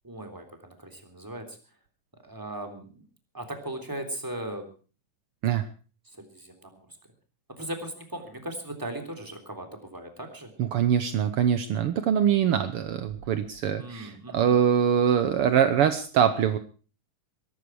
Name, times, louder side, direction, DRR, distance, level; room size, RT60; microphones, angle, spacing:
voice 1, 0.0-1.6 2.2-3.0 3.3-4.7 6.1-6.9 7.6-10.5 13.8-14.6, right 1 dB, 5° right, 4 dB, 3.0 m, -38 dB
voice 2, 10.6-16.6, right 8 dB, 80° right, 10 dB, 1.3 m, -23 dB
22.0 x 12.5 x 4.8 m, 0.38 s
omnidirectional pair, 3.9 m